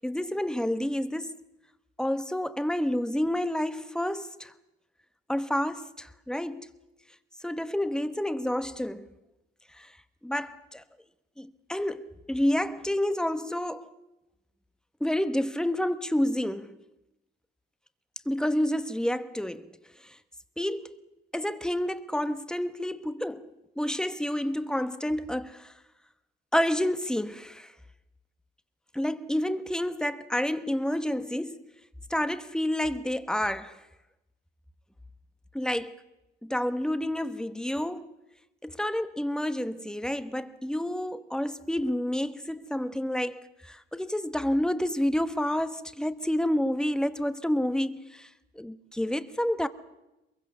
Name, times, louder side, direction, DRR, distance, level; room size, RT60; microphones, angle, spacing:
voice 1, 0.0-1.4 2.0-4.5 5.3-6.7 7.4-9.1 9.7-9.9 10.2-10.8 11.4-13.9 15.0-16.8 18.2-19.8 20.0-20.2 20.6-21.0 21.3-25.7 26.5-27.7 28.9-31.6 32.1-33.8 35.5-36.0 36.4-38.1 38.6-48.3 48.5-49.7, left 1 dB, 5° left, 1.2 m, -29 dB
22.5 x 22.0 x 6.9 m
cardioid pair, 90°, 20 cm